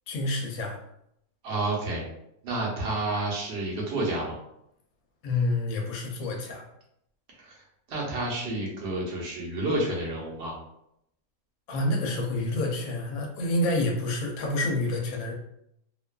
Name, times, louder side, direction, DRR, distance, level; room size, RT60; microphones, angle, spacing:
voice 1, 0.1-0.8 5.2-6.6 11.7-15.3, left 2 dB, 75° left, 1 dB, 1.0 m, -28 dB
voice 2, 1.4-2.0 2.4-4.4 7.3-7.6 7.9-10.6, right 2 dB, 55° right, -3 dB, 0.9 m, -30 dB
2.6 x 2.3 x 2.2 m, 0.79 s
omnidirectional pair, 1.5 m